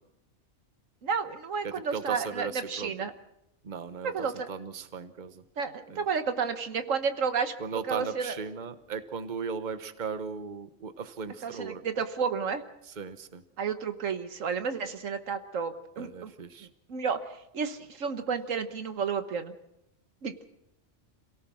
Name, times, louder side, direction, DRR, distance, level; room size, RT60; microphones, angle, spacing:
voice 1, 1.0-3.1 4.0-4.5 5.6-7.5 7.8-8.4 11.4-12.7 13.6-16.3 16.9-17.2 17.5-19.5 20.2-20.5, right 6 dB, 90° right, 9 dB, 1.6 m, -31 dB
voice 2, 1.6-2.9 3.6-5.4 5.9-6.0 7.6-11.8 13.0-13.4 16.0-16.7, right 6 dB, 40° right, 11 dB, 1.2 m, -37 dB
27.5 x 17.5 x 6.3 m, 0.84 s
omnidirectional pair, 1.3 m